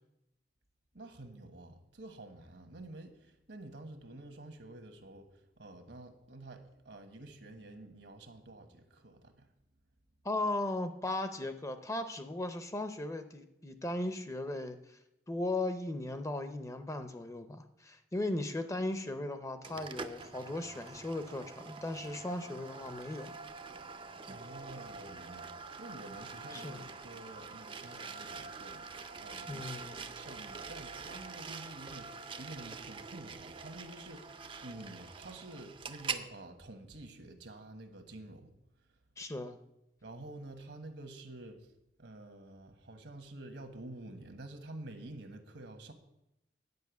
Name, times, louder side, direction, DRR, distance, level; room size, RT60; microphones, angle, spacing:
voice 1, 0.9-9.5 24.3-38.5 40.0-41.7 42.0-45.9, right 2 dB, 75° right, 7 dB, 1.3 m, -49 dB
voice 2, 10.2-15.0 15.3-23.3 26.5-26.8 29.5-30.0 39.2-39.6, left 2 dB, 15° left, 9 dB, 0.6 m, -37 dB
sound 1, 19.6-36.3, right 4 dB, 30° right, 0.5 m, -45 dB
9.5 x 5.5 x 8.2 m, 0.86 s
head